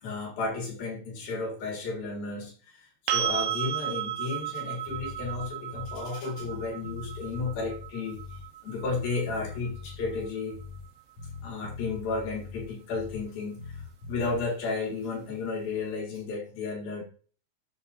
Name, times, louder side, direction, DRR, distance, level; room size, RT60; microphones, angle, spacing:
voice 1, 0.0-8.2 8.6-10.6 11.4-13.8 14.1-17.0, left 3 dB, 55° left, -1 dB, 3.2 m, -33 dB
sound 1, 3.1-10.9 13.7-13.8, right 11 dB, 85° right, 3.6 m, -35 dB
Bass guitar, 4.9-6.1 6.4-8.5 8.8-10.9 11.2-13.3 13.6-14.4, left 4 dB, 35° left, 4.2 m, -42 dB
11.5 x 7.8 x 2.6 m, 0.40 s
omnidirectional pair, 5.8 m